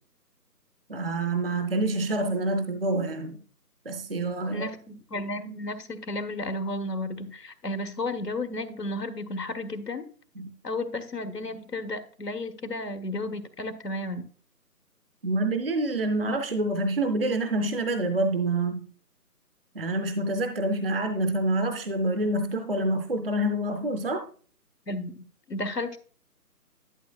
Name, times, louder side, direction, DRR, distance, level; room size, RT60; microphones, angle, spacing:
voice 1, 0.9-3.4 3.9-4.7 10.4-10.5 15.2-18.8 19.7-24.2, right 2 dB, 40° right, 0.6 m, -27 dB
voice 2, 4.5-10.0 10.6-14.2 24.9-26.0, left 2 dB, 85° left, 1.4 m, -33 dB
12.0 x 7.1 x 2.3 m
figure-of-eight pair, 155°, 48 cm